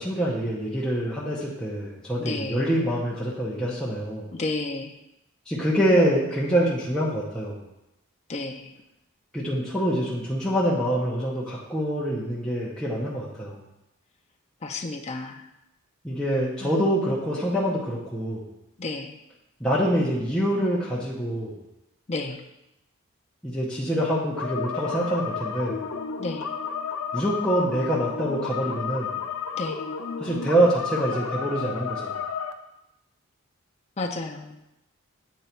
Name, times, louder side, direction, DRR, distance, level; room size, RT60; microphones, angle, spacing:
voice 1, 0.0-4.3 5.5-7.6 9.3-13.6 16.0-18.4 19.6-21.6 23.4-25.8 27.1-29.1 30.2-32.1, right 1 dB, 5° left, -7 dB, 0.8 m, -25 dB
voice 2, 2.2-2.7 4.3-4.9 8.3-8.7 14.6-15.4 16.6-16.7 18.8-19.1 22.1-22.4 26.2-26.5 29.6-29.8 34.0-34.5, left 3 dB, 30° left, 4 dB, 0.5 m, -32 dB
sound 1, 24.4-32.5, left 6 dB, 80° left, 0.5 m, -32 dB
8.1 x 3.1 x 4.4 m, 0.89 s
head